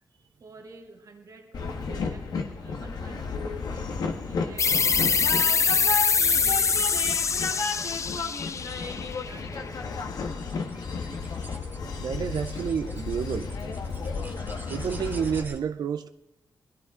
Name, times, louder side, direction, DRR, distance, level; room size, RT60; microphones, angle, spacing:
voice 1, 0.4-2.3 2.6-4.8 5.2-7.1 7.4-9.8, right 3 dB, 60° right, 2.3 m, -48 dB
Train, 1.5-15.4, left 4 dB, 85° left, 1.5 m, -33 dB
sound 1, 4.6-9.9, left 5 dB, 50° left, 0.4 m, -24 dB
sound 2, 8.0-8.8 9.6-9.7 10.3-15.6, right 2 dB, 30° right, 1.6 m, -50 dB
voice 2, 12.0-13.5 14.7-16.1, right 7 dB, 85° right, 0.5 m, -29 dB
19.5 x 14.0 x 3.7 m
cardioid pair, 80°, 7 cm